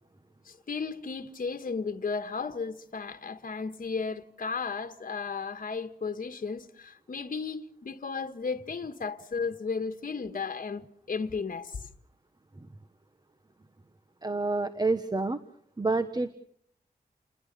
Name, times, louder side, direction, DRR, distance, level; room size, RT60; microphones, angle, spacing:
voice 1, 0.4-11.9, left 5 dB, 60° left, 1.6 m, -34 dB
voice 2, 14.2-15.4 15.8-16.3, right 3 dB, 25° right, 1.3 m, -28 dB
29.5 x 21.0 x 6.8 m
wide cardioid pair, 110°, 16 cm